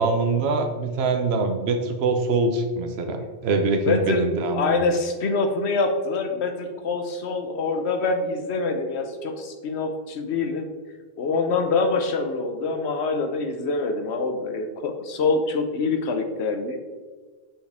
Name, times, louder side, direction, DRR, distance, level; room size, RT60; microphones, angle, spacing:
voice 1, 0.0-4.8, right 3 dB, 80° right, 6 dB, 0.9 m, -24 dB
voice 2, 3.9-4.2 4.5-10.7 11.2-16.8, left 3 dB, 85° left, 5 dB, 1.1 m, -25 dB
7.5 x 4.5 x 3.5 m, 1.4 s
omnidirectional pair, 1.1 m